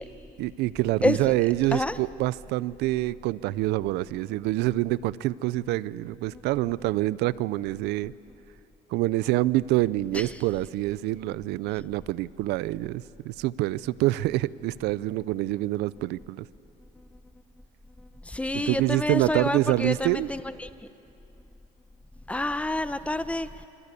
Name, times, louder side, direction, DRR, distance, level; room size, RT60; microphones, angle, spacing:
voice 1, 0.4-8.1 8.9-16.4 18.5-20.3, right 17 dB, 90° right, 20 dB, 0.6 m, -26 dB
voice 2, 18.3-20.4 22.3-23.5, left 1 dB, 5° left, 12 dB, 0.9 m, -27 dB
26.0 x 25.5 x 8.4 m, 2.7 s
cardioid pair, 110°, 17 cm